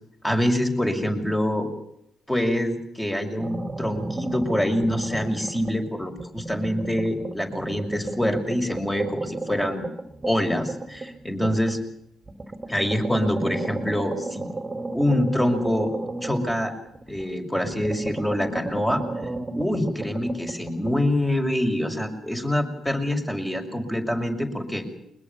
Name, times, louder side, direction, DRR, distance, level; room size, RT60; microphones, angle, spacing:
voice 1, 0.2-1.7 2.3-9.8 10.2-11.8 12.7-14.5 14.9-15.9 16.2-16.7 17.1-19.0 19.5-24.9, left 1 dB, 10° left, 5 dB, 6.1 m, -25 dB
sound 1, 3.4-5.9 6.2-11.8 12.3-17.3 17.6-21.0, right 2 dB, 25° right, 2.5 m, -34 dB
23.0 x 21.0 x 7.2 m, 0.78 s
hypercardioid pair, 50°, 0 cm